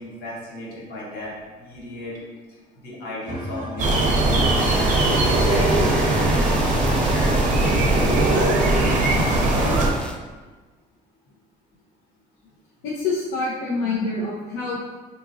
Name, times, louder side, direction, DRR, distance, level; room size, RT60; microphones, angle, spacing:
voice 1, 0.0-2.2 2.8-4.7 5.2-6.5 6.9-10.1, left 1 dB, 65° left, -5 dB, 1.1 m, -33 dB
sound 1, 3.2-9.5, equal, 25° right, 0.9 m, -34 dB
sound 2, 3.8-9.9, right 2 dB, 50° right, 0.5 m, -20 dB
sound 3, 4.5-10.2, left 1 dB, 5° left, 0.3 m, -35 dB
voice 2, 12.8-14.8, left 3 dB, 85° left, -6 dB, 0.6 m, -26 dB
3.7 x 2.8 x 2.5 m, 1.3 s
cardioid pair, 110°, 17 cm